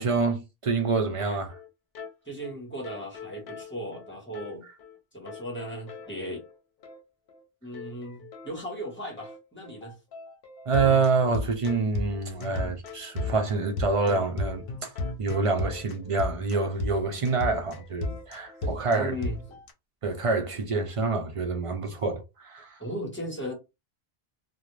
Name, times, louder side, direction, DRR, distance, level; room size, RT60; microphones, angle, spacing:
voice 1, 0.0-1.5 10.7-14.9 15.2-19.1 20.0-22.8, right 4 dB, 50° right, 0.4 m, -27 dB
sound 1, 1.2-1.3 1.5-1.7 1.9-2.1 2.4-2.5 2.8-4.5 4.8-5.0 5.3-6.5 6.8-7.0 7.3-7.4 7.7-19.7, left 3 dB, 65° left, 0.8 m, -36 dB
voice 2, 2.2-4.6 5.1-6.4 7.6-9.9 18.6-19.4 22.8-23.5, equal, 10° left, 1.0 m, -37 dB
2.4 x 2.1 x 3.0 m
omnidirectional pair, 1.0 m